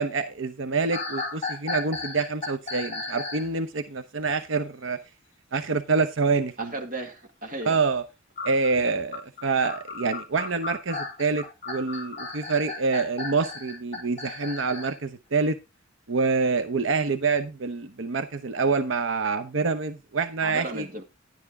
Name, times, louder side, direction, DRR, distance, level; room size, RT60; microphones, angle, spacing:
voice 1, 0.0-5.0 5.5-6.7 7.6-8.0 8.4-15.6 16.1-20.9, right 4 dB, 85° right, 0.8 m, -26 dB
sound 1, 0.9-3.5 8.4-15.0, left 3 dB, 35° left, 5.0 m, -35 dB
voice 2, 6.6-7.8 20.4-21.0, right 2 dB, 45° right, 2.0 m, -35 dB
11.0 x 9.1 x 3.6 m
head